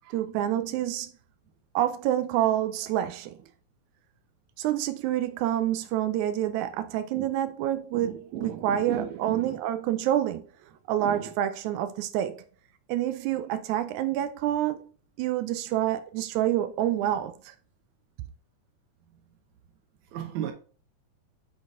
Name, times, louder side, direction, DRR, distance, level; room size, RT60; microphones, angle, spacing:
voice 1, 0.1-1.1 1.7-3.4 4.6-10.5 10.9-12.4 12.9-14.8 15.2-17.5, right 12 dB, 85° right, 1.7 m, -27 dB
voice 2, 7.9-9.6 11.0-11.3 20.1-20.5, right 10 dB, 70° right, 2.0 m, -35 dB
7.4 x 4.1 x 3.6 m
omnidirectional pair, 4.0 m